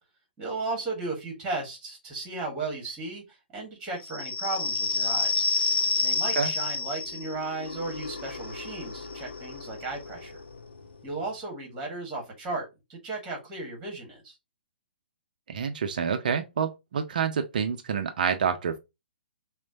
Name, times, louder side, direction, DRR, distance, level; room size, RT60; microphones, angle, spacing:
voice 1, 0.4-5.4 6.0-10.4 11.0-14.4, right 3 dB, 15° right, 1.5 m, -35 dB
sound 1, 4.0-11.3, left 3 dB, 65° left, 0.6 m, -30 dB
voice 2, 15.5-18.8, right 7 dB, 50° right, 0.5 m, -28 dB
5.9 x 2.2 x 2.7 m
figure-of-eight pair, 120°, 6 cm